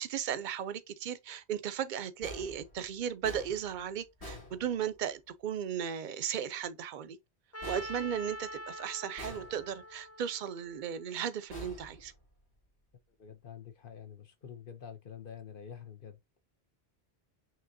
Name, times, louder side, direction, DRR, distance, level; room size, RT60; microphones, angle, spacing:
voice 1, 0.0-7.2 7.7-12.1, right 9 dB, 55° right, 0.6 m, -36 dB
sound 1, 2.2-5.3 7.6-8.7 9.2-10.0 11.5-12.6, left 1 dB, 75° left, 2.8 m, -48 dB
Trumpet, 7.5-11.6, equal, 25° left, 0.3 m, -45 dB
voice 2, 13.2-16.2, left 8 dB, 55° left, 1.0 m, -47 dB
5.9 x 3.2 x 2.6 m
omnidirectional pair, 1.1 m